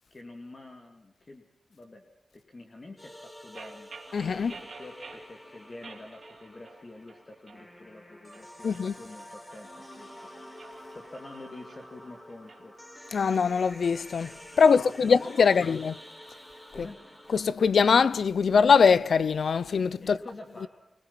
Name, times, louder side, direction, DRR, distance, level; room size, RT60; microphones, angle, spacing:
voice 1, 0.1-1.4 1.7-2.1 2.5-3.9 4.3-10.3 10.9-12.7 14.6-15.2 16.7-17.0 20.0-20.7, left 2 dB, 35° left, 2.5 m, -47 dB
sound 1, 3.0-17.5, equal, 20° left, 4.6 m, -48 dB
sound 2, 3.5-5.3 5.8-6.8 7.1-7.6 8.1-10.0 10.5-12.6, right 4 dB, 60° right, 3.2 m, -49 dB
voice 2, 4.1-4.5 8.6-8.9 13.1-15.9 16.8-16.9 17.3-20.2, left 5 dB, 75° left, 0.7 m, -22 dB
25.5 x 19.5 x 5.9 m
wide cardioid pair, 130°, 0 cm